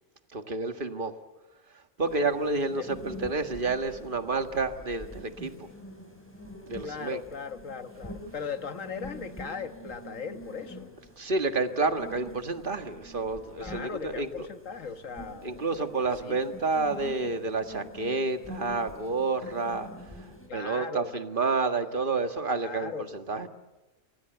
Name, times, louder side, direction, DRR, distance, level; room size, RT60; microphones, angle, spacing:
voice 1, 0.3-1.1 2.0-5.5 6.7-7.2 11.2-14.5 15.4-19.9 20.2-20.3 20.5-23.5, right 3 dB, 40° right, 8 dB, 1.8 m, -29 dB
sound 1, 2.0-20.5, equal, 10° left, 6.1 m, -46 dB
voice 2, 6.8-10.9 13.6-16.4 20.5-21.1 22.6-23.1, left 6 dB, 75° left, 9 dB, 1.9 m, -38 dB
28.5 x 25.5 x 8.1 m, 1.1 s
omnidirectional pair, 1.4 m